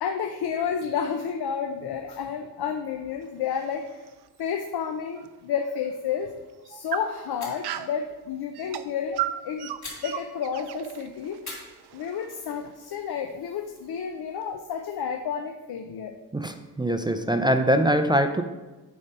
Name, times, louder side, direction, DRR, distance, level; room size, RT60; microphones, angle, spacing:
voice 1, 0.0-3.9 4.4-6.3 6.6-9.7 10.0-11.4 11.9-16.2, left 7 dB, 70° left, 6 dB, 0.6 m, -31 dB
sound 1, 3.2-5.3 5.8-5.9 6.5-8.0 8.5-12.8, right 12 dB, 80° right, 0.5 m, -36 dB
sound 2, 6.1-6.5 6.7-6.8 7.3-7.8 9.8-10.7 11.4-12.5, left 2 dB, 45° left, 2.8 m, -44 dB
voice 2, 16.3-18.4, right 1 dB, 10° right, 6 dB, 0.3 m, -23 dB
8.5 x 4.2 x 5.4 m, 1.2 s
wide cardioid pair, 140°, 39 cm